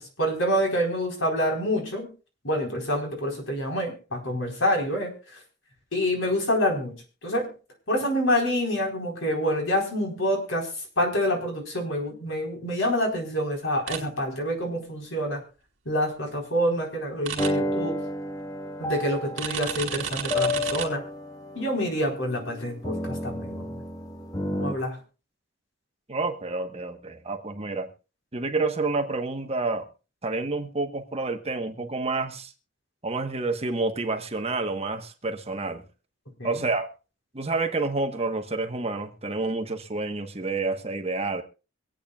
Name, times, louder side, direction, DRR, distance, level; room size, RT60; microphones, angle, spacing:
voice 1, 0.2-2.1 2.4-5.1 5.9-7.0 7.2-7.5 7.9-10.7 11.0-15.4 15.9-18.0 18.8-21.0 21.5-23.8 24.5-25.0 36.4-36.6, equal, 85° left, 4.4 m, -27 dB
sound 1, 13.9-14.0 17.2-17.5 19.4-20.9, right 8 dB, 75° right, 2.7 m, -31 dB
sound 2, 17.4-24.7, left 1 dB, 20° left, 1.3 m, -31 dB
voice 2, 26.1-27.9 28.3-29.9 30.2-32.5 33.0-35.8 36.4-36.9 37.3-41.4, right 3 dB, 30° right, 1.2 m, -29 dB
25.0 x 8.8 x 2.4 m
head